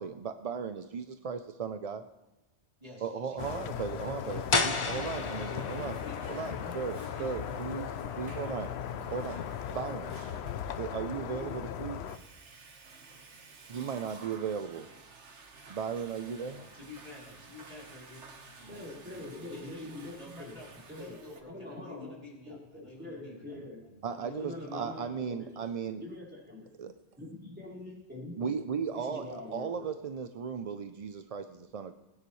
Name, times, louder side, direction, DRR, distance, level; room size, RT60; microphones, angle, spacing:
voice 1, 0.0-2.1 3.0-6.0 6.3-7.9 8.2-8.7 9.1-9.4 9.7-10.1 10.8-12.0 13.7-14.9 15.7-16.6 24.0-26.0 26.8-26.9 28.4-29.2 29.5-31.9, right 6 dB, 50° right, 9 dB, 0.4 m, -36 dB
voice 2, 2.8-5.5 6.0-8.3 8.6-9.1 16.5-19.9 20.1-20.7 21.0-25.0, left 1 dB, 30° right, -3 dB, 3.2 m, -50 dB
sound 1, 3.4-12.2, left 8 dB, 70° left, 0.8 m, -38 dB
Water / Toilet flush, 3.9-21.4, right 3 dB, 80° right, 1.6 m, -53 dB
sound 2, 4.5-10.1, left 3 dB, 30° left, 0.7 m, -36 dB
voice 3, 18.7-20.5 20.9-21.1 21.5-22.1 22.5-23.8 24.4-25.7 26.0-26.7 27.2-28.5 28.9-29.9, left 2 dB, 10° right, -7 dB, 4.5 m, -44 dB
20.5 x 9.7 x 3.1 m, 1.1 s
omnidirectional pair, 1.2 m